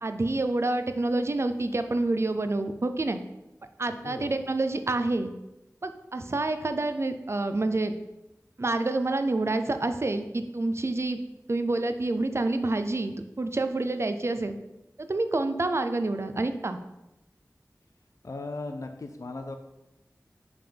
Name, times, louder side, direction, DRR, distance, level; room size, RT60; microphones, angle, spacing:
voice 1, 0.0-3.2 3.8-5.3 5.8-7.9 8.6-11.2 11.5-14.6 15.0-16.8, right 2 dB, 50° right, 8 dB, 0.5 m, -28 dB
voice 2, 3.9-4.4 18.2-19.6, left 2 dB, 65° left, 5 dB, 0.5 m, -38 dB
5.7 x 3.6 x 5.1 m, 0.93 s
wide cardioid pair, 60°, 6 cm